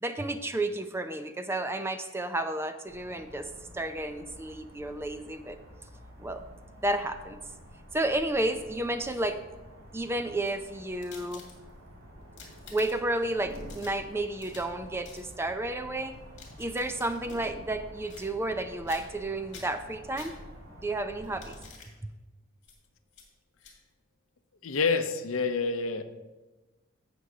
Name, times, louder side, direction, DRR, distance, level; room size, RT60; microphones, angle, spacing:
voice 1, 0.0-3.5 3.7-5.6 6.2-6.4 6.8-7.4 7.9-9.4 9.9-11.5 12.7-16.1 16.6-20.3 20.8-21.6 22.0-22.1, right 1 dB, 10° right, 9 dB, 0.4 m, -31 dB
sound 1, 2.9-21.7, equal, 75° right, 2.1 m, -49 dB
sound 2, 8.8-9.5 10.3-11.9 12.2-13.2 13.5-14.8 15.0-15.3 16.1-17.4 18.1-18.6 18.9-19.2 19.5-20.7 21.2-21.9 22.6-22.8 23.1-23.3 23.6-23.7, left 5 dB, 60° left, 2.2 m, -51 dB
voice 2, 24.6-26.0, left 4 dB, 75° left, 10 dB, 0.6 m, -27 dB
16.0 x 6.1 x 2.8 m, 1.1 s
head